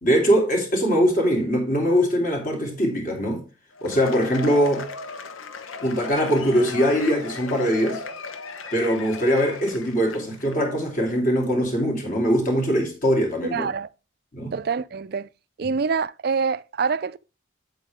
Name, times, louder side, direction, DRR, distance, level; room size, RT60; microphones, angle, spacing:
voice 1, 0.0-3.4 3.8-4.9 5.8-8.0 8.7-13.7 14.3-14.6 15.6-15.7, equal, 40° left, 2.9 m, -22 dB
Cheering / Applause / Crowd, 3.7-10.5, left 4 dB, 85° left, 1.0 m, -36 dB
voice 2, 13.5-13.9 14.5-15.3 15.6-17.2, right 5 dB, 50° right, 0.4 m, -25 dB
8.4 x 8.0 x 3.5 m
head